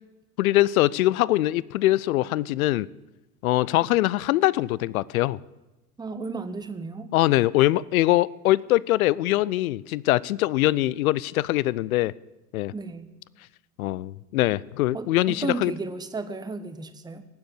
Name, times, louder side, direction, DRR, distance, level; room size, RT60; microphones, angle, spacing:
voice 1, 0.4-2.9 3.4-5.4 7.1-12.1 12.5-12.7 13.8-15.7, left 16 dB, 65° left, 22 dB, 0.6 m, -22 dB
voice 2, 6.0-7.1 12.7-13.1 14.9-17.2, right 3 dB, 10° right, 11 dB, 1.0 m, -33 dB
18.5 x 7.7 x 7.9 m, 1.0 s
figure-of-eight pair, 75°, 46 cm